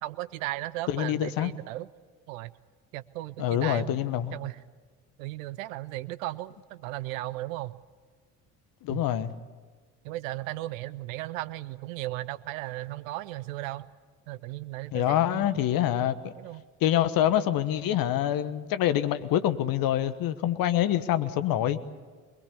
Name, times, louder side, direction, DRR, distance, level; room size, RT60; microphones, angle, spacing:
voice 1, 0.0-1.9 2.3-2.5 2.9-4.0 4.3-4.6 5.2-7.7 8.9-9.0 10.0-13.9 14.3-15.7 16.4-16.6, right 16 dB, 75° right, 0.7 m, -36 dB
voice 2, 0.9-1.5 3.4-4.4 8.8-9.3 14.9-16.3 16.8-21.8, left 11 dB, 55° left, 1.3 m, -26 dB
23.0 x 21.5 x 8.4 m
hypercardioid pair, 55°, 40 cm